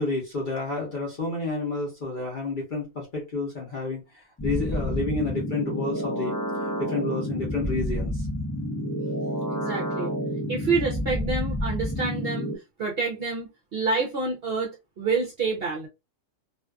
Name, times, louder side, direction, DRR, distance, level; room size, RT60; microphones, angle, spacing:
voice 1, 0.0-8.3, left 3 dB, 45° left, 0.7 m, -30 dB
sound 1, 4.4-12.6, equal, 30° left, 0.3 m, -29 dB
voice 2, 9.5-10.1 10.5-12.5 12.8-15.9, right 4 dB, 55° right, 0.7 m, -28 dB
2.6 x 2.4 x 2.3 m
omnidirectional pair, 1.5 m